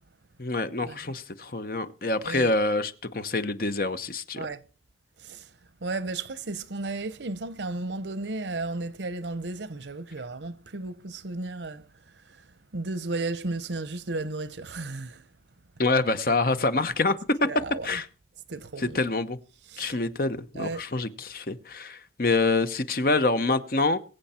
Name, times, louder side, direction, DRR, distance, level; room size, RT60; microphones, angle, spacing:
voice 1, 0.4-4.5 15.8-17.2 17.8-18.1 18.8-19.4 19.8-24.0, left 3 dB, 55° left, 0.9 m, -26 dB
voice 2, 4.4-4.7 5.2-5.5 5.8-15.3 17.4-18.0 18.5-19.0 19.7-19.9 20.6-20.8, right 2 dB, 90° right, 0.9 m, -34 dB
22.5 x 7.9 x 4.4 m
head